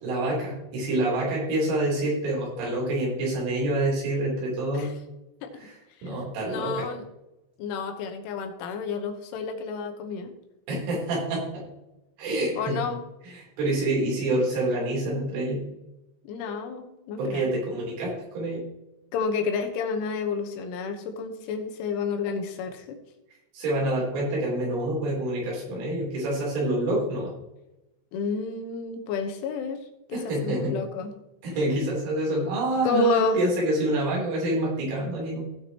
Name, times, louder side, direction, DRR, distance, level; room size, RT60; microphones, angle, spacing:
voice 1, 0.0-4.9 5.6-5.8 6.0-6.9 10.7-11.6 12.2-12.8 13.3-15.6 17.2-18.6 23.5-27.3 30.1-30.7 31.4-35.4, right 1 dB, 80° right, -5 dB, 6.2 m, -27 dB
voice 2, 6.5-7.0 7.6-10.3 12.6-13.0 16.3-17.5 19.1-23.0 28.1-31.1 32.8-33.4, left 3 dB, 80° left, 5 dB, 3.6 m, -30 dB
17.0 x 6.5 x 3.0 m, 0.93 s
omnidirectional pair, 5.6 m